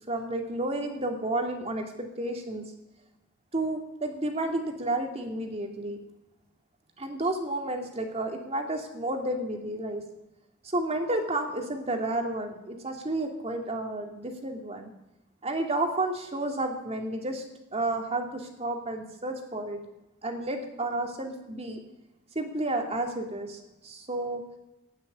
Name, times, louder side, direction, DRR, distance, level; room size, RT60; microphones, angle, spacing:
voice 1, 0.1-2.6 3.5-6.0 7.0-10.0 10.6-14.9 15.4-17.4 17.7-19.8 20.2-21.8 22.4-24.4, right 2 dB, 30° right, 3 dB, 2.2 m, -31 dB
16.0 x 6.6 x 9.8 m, 0.93 s
head